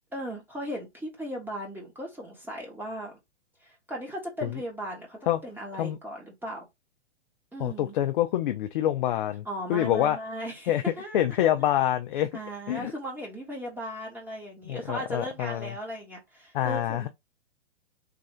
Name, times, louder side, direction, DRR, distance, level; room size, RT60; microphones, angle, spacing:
voice 1, 0.1-3.2 3.6-6.7 7.5-7.9 9.4-11.4 12.3-17.1, equal, 5° right, 1.0 m, -37 dB
voice 2, 7.6-10.2 10.7-10.8 11.1-12.3 12.7-12.9 14.7-15.7 16.5-17.1, left 12 dB, 45° left, 0.4 m, -26 dB
3.3 x 2.3 x 3.8 m
hypercardioid pair, 135°, 36 cm